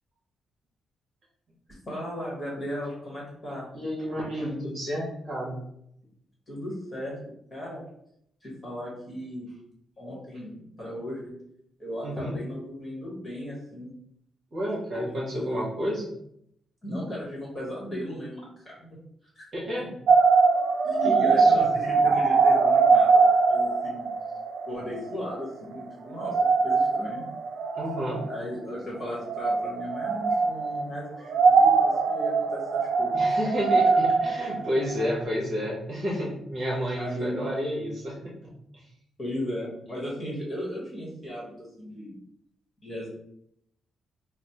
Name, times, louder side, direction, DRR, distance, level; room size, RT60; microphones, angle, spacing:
voice 1, 1.9-3.7 6.5-7.2 7.5-7.8 8.4-9.5 10.0-11.3 11.8-13.9 14.9-15.7 16.8-19.0 19.4-19.5 19.8-19.9 20.8-24.1 24.6-26.4 26.6-27.2 28.3-33.4 37.0-37.4 39.2-42.2 42.8-43.1, equal, 20° left, -5 dB, 1.3 m, -36 dB
voice 2, 3.7-5.6 12.0-12.4 14.5-16.0 19.5-19.9 21.0-21.7 27.7-28.2 33.1-38.8, equal, 40° right, -4 dB, 1.1 m, -31 dB
sound 1, 20.1-25.5 25.7-25.8 26.1-28.4 29.2-30.9 31.2-35.2, right 4 dB, 70° right, 0.5 m, -22 dB
3.2 x 2.0 x 4.2 m, 0.72 s
cardioid pair, 175°, 0 cm